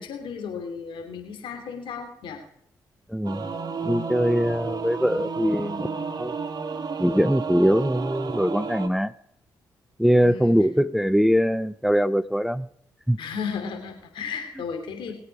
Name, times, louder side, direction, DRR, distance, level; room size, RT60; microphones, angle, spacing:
voice 1, 0.0-2.4 10.1-10.5 13.2-15.2, left 6 dB, 75° left, 5 dB, 3.1 m, -34 dB
voice 2, 3.1-3.4 3.8-6.3 7.0-9.1 10.0-12.7 13.1-13.2, equal, ahead, 17 dB, 0.5 m, -22 dB
Singing / Musical instrument, 3.2-8.9, right 5 dB, 50° right, 1.8 m, -32 dB
21.0 x 8.6 x 4.8 m, 0.71 s
supercardioid pair, 50°, 9 cm